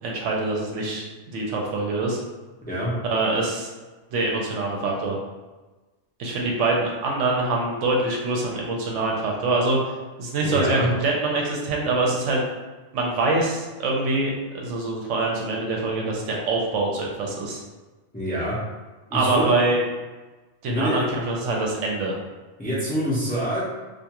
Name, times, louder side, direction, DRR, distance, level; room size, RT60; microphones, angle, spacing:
voice 1, 0.0-2.2 3.0-3.7 4.1-5.2 6.2-9.8 10.2-12.4 12.9-14.3 14.6-17.6 19.1-19.8 20.6-22.2, right 2 dB, 75° right, -1 dB, 0.9 m, -24 dB
voice 2, 10.4-10.9 18.1-18.6 19.1-19.5 20.7-21.0 22.6-23.7, equal, 10° left, -8 dB, 0.4 m, -25 dB
2.4 x 2.3 x 2.8 m, 1.2 s
omnidirectional pair, 1.3 m